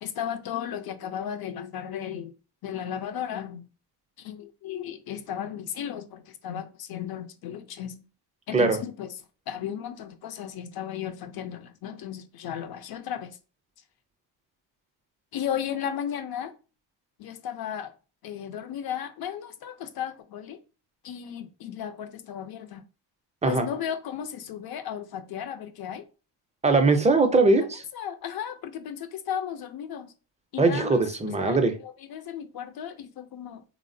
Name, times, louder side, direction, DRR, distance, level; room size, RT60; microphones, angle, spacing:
voice 1, 0.0-2.3 2.6-3.7 4.2-8.1 8.5-9.1 9.5-13.4 15.3-16.5 17.2-17.9 18.2-20.6 21.0-22.8 23.4-26.0 27.5-27.7 27.9-30.1 30.5-31.1 31.4-33.6, left 9 dB, 50° left, 0.5 m, -35 dB
voice 2, 26.6-27.8 30.6-31.7, right 3 dB, 15° right, 0.4 m, -21 dB
3.4 x 2.0 x 2.6 m
cardioid pair, 95°, 47 cm